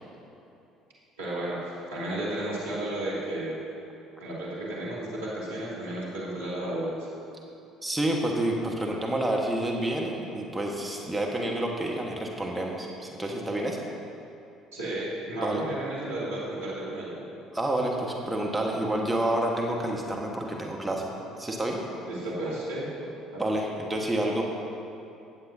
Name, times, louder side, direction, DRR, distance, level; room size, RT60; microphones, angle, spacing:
voice 1, 1.2-3.6 4.2-7.1 14.7-17.2 22.1-23.4, right 1 dB, 85° right, -8 dB, 2.4 m, -33 dB
voice 2, 7.8-13.8 15.4-15.6 17.5-21.1 21.4-21.8 23.4-24.4, right 1 dB, 10° right, -1 dB, 1.4 m, -29 dB
17.5 x 7.5 x 2.8 m, 2.8 s
hypercardioid pair, 60°, 0 cm